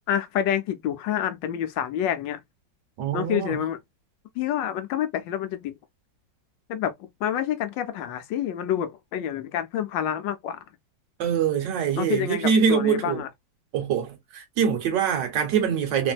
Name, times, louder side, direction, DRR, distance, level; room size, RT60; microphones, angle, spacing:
voice 1, 0.1-2.4 3.1-3.8 4.4-5.8 6.7-6.9 7.2-10.6 12.0-13.3, left 10 dB, 75° left, 1.2 m, -28 dB
voice 2, 3.0-3.6 11.2-13.2 13.7-16.1, right 7 dB, 70° right, 1.5 m, -24 dB
3.3 x 2.6 x 2.2 m
omnidirectional pair, 2.1 m